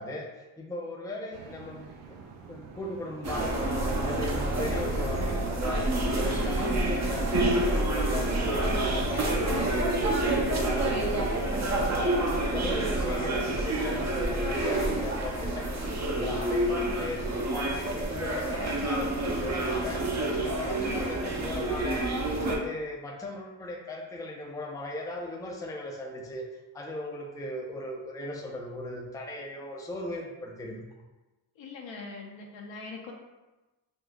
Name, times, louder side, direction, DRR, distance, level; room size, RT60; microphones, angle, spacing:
voice 1, 0.0-2.2 2.5-5.8 6.1-8.5 8.9-17.2 17.5-20.1 20.4-22.1 22.4-26.5 26.7-30.8, left 1 dB, 5° left, -1 dB, 0.5 m, -38 dB
sound 1, 1.3-14.5, right 5 dB, 85° right, 0.5 m, -47 dB
sound 2, 3.2-22.6, right 1 dB, 35° right, 0.7 m, -28 dB
voice 2, 31.6-33.1, left 4 dB, 65° left, 0 dB, 0.7 m, -42 dB
3.7 x 2.6 x 2.4 m, 1.1 s
cardioid pair, 55°, 48 cm